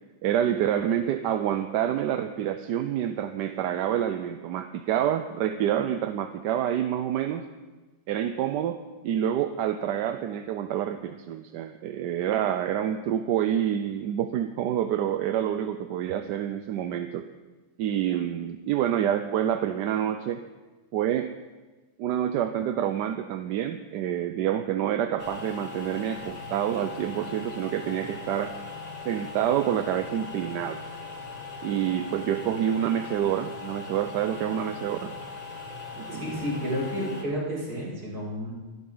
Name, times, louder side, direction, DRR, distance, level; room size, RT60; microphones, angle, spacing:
voice 1, 0.2-7.4 8.1-8.8 9.0-17.2 17.8-20.4 20.9-21.3 22.0-28.5 29.0-30.8 31.6-35.1 36.0-36.2, right 10 dB, 85° right, 8 dB, 1.3 m, -27 dB
sound 1, 25.2-37.2, left 4 dB, 25° left, 2.1 m, -40 dB
voice 2, 36.1-38.5, equal, 65° right, -7 dB, 7.1 m, -31 dB
23.0 x 12.0 x 4.0 m, 1.2 s
omnidirectional pair, 1.8 m